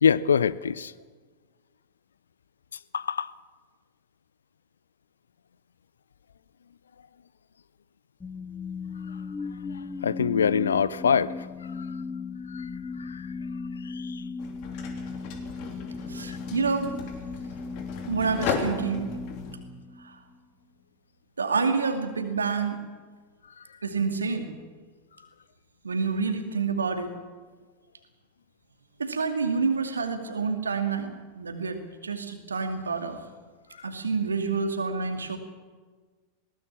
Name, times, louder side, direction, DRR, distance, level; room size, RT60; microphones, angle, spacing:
voice 1, 0.0-0.9 2.9-3.3 10.0-11.5 11.8-11.9 12.5-12.7 13.0-13.3 13.8-14.2 16.3-16.4 33.8-33.9, left 7 dB, 70° left, 20 dB, 0.6 m, -25 dB
sound 1, 8.2-20.4, left 4 dB, 15° left, 0.7 m, -37 dB
sound 2, 14.4-19.5, left 6 dB, 45° left, 3.1 m, -35 dB
voice 2, 16.1-17.0 18.1-19.1 20.0-20.2 21.4-22.8 23.8-24.5 25.8-27.1 29.0-33.2 33.8-35.4, right 5 dB, 75° right, 7 dB, 2.4 m, -28 dB
21.0 x 18.0 x 7.4 m, 1.4 s
figure-of-eight pair, 90°, 0 cm